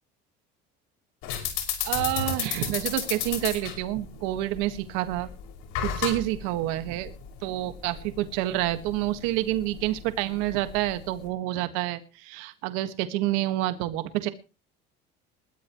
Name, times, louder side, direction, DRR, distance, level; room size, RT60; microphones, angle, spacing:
sound 1, 1.2-11.3, left 9 dB, 85° left, 5.8 m, -34 dB
voice 1, 1.8-5.3 5.8-7.1 7.4-14.3, right 15 dB, 85° right, 11 dB, 1.6 m, -28 dB
21.0 x 13.0 x 3.1 m, 0.33 s
cardioid pair, 175°, 20 cm